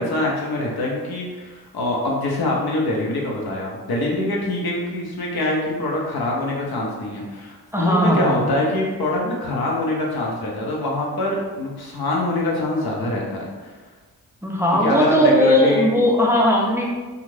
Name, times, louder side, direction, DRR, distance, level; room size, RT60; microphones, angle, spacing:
voice 1, 0.0-13.5 14.8-15.9, left 1 dB, 65° left, -2 dB, 0.8 m, -24 dB
voice 2, 7.7-8.5 14.4-16.9, equal, 5° right, -2 dB, 0.4 m, -18 dB
2.4 x 2.4 x 3.2 m, 1.3 s
cardioid pair, 50°, 40 cm